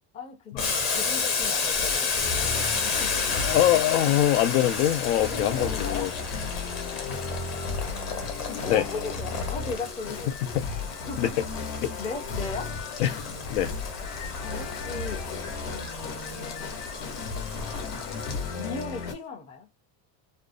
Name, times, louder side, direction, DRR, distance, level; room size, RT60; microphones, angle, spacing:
voice 1, 0.1-3.2 5.3-6.1 8.5-10.4 11.1-11.3 12.0-12.8 14.4-15.3 15.7-16.8 18.6-19.7, left 3 dB, 15° left, 0.4 m, -37 dB
Boiling, 0.6-19.0, left 4 dB, 35° left, 0.9 m, -32 dB
sound 1, 1.8-19.1, left 4 dB, 60° left, 0.9 m, -35 dB
voice 2, 3.3-6.1 8.7-8.9 10.5-10.7 11.2-11.3 11.8-11.9 13.0-13.7, left 12 dB, 85° left, 0.7 m, -24 dB
2.5 x 2.0 x 2.4 m
cardioid pair, 145°, 49 cm